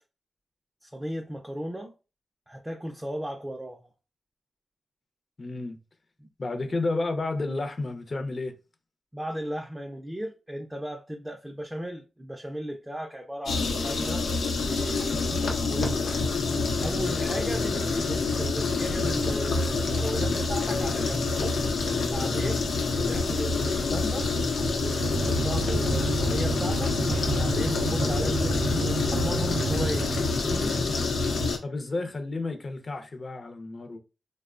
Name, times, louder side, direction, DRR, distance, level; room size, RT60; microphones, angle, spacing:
voice 1, 0.8-1.9 2.5-3.9 6.2-6.3 9.1-14.3 14.6-16.1 16.8-21.3 22.1-22.6 23.0-24.3 24.8-26.9 27.3-30.8, equal, 10° right, 0.4 m, -36 dB
voice 2, 5.4-5.8 6.4-8.5 22.9-23.1 31.6-34.0, left 2 dB, 40° left, 0.5 m, -31 dB
sound 1, 13.5-31.6, left 3 dB, 85° left, 0.6 m, -27 dB
sound 2, 25.0-30.4, right 2 dB, 80° right, 0.4 m, -30 dB
3.0 x 2.0 x 2.4 m
wide cardioid pair, 100°, 0 cm